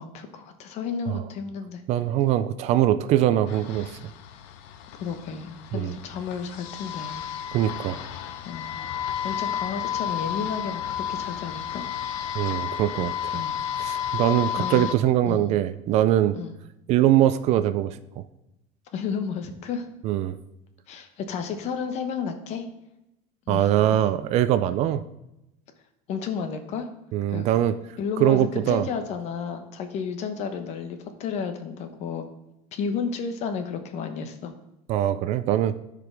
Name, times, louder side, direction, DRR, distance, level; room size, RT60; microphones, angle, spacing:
voice 1, 0.0-1.8 5.0-7.2 8.4-8.7 9.2-11.8 13.3-13.6 14.6-14.9 15.3-15.5 16.4-16.5 18.9-19.9 20.9-22.7 23.5-23.8 26.1-26.9 27.3-27.5 28.0-32.3 32.7-34.5, left 6 dB, 45° left, 7 dB, 1.0 m, -32 dB
voice 2, 1.9-3.9 5.7-5.9 7.5-8.0 12.3-13.4 13.8-16.4 16.9-18.2 20.0-20.4 23.5-25.0 27.1-27.7 28.2-28.9 34.9-35.7, right 12 dB, 40° right, 13 dB, 0.4 m, -22 dB
sound 1, 3.5-14.9, left 9 dB, 70° left, 0.7 m, -32 dB
13.0 x 5.0 x 3.4 m, 0.88 s
cardioid pair, 150°, 16 cm